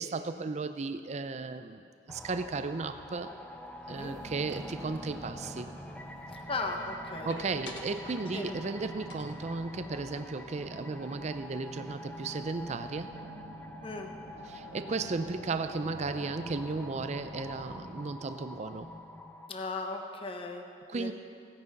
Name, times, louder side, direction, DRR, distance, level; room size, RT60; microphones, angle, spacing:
voice 1, 0.0-1.8 2.1-3.3 3.9-5.7 7.2-13.1 14.5-18.9 20.9-21.1, right 3 dB, 40° right, 10 dB, 0.4 m, -35 dB
sound 1, 2.1-19.5, left 1 dB, 10° left, 0.6 m, -47 dB
sound 2, 3.9-17.9, right 1 dB, 80° right, 1.2 m, -48 dB
sound 3, 5.6-6.1 7.3-8.8 9.1-10.8 11.1-11.3 11.6-12.1, left 3 dB, 70° left, 1.3 m, -51 dB
voice 2, 6.3-7.3 8.3-8.5 13.8-14.1 19.5-21.1, left 3 dB, 30° left, 3 dB, 0.9 m, -37 dB
16.0 x 9.7 x 5.4 m, 2.3 s
head